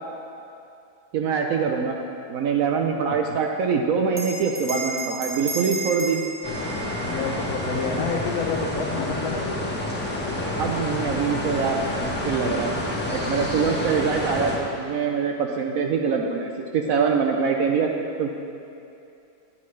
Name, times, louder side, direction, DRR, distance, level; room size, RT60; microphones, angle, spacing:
voice 1, 1.1-2.0 2.3-6.2 10.6-12.7 13.1-17.9 18.2-18.3, right 6 dB, 70° right, 2 dB, 0.9 m, -24 dB
Bell, 4.1-9.0, right 3 dB, 30° right, 0.3 m, -34 dB
sound 1, 6.4-14.6, left 1 dB, 10° left, 0.7 m, -28 dB
voice 2, 7.0-9.7, left 5 dB, 70° left, 2 dB, 1.1 m, -29 dB
10.0 x 8.4 x 3.2 m, 2.6 s
omnidirectional pair, 1.8 m